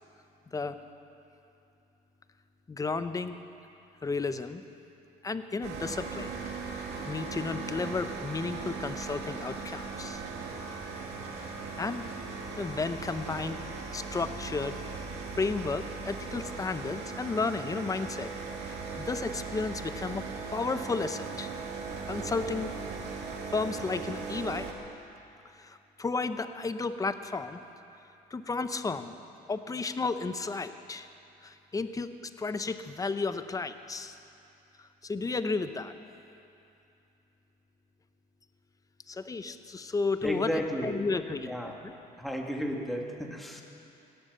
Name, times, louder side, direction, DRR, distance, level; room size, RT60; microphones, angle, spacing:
voice 1, 0.5-0.8 2.7-3.4 4.0-4.6 5.2-6.3 6.7-10.2 11.8-12.1 12.6-13.6 13.9-14.8 15.4-18.3 18.6-20.2 20.5-21.5 22.1-22.7 23.5-24.7 25.5-27.6 28.3-29.1 29.5-31.1 31.4-34.2 34.8-35.9 39.1-40.5 40.8-41.5 41.8-41.9, left 4 dB, 20° left, 10 dB, 0.7 m, -33 dB
sound 1, 5.6-24.7, right 4 dB, 90° right, 2.0 m, -38 dB
voice 2, 40.2-41.1 41.4-41.7 42.2-43.6, equal, ahead, 0 dB, 1.9 m, -33 dB
17.0 x 12.5 x 6.7 m, 2.7 s
cardioid pair, 110°, 17 cm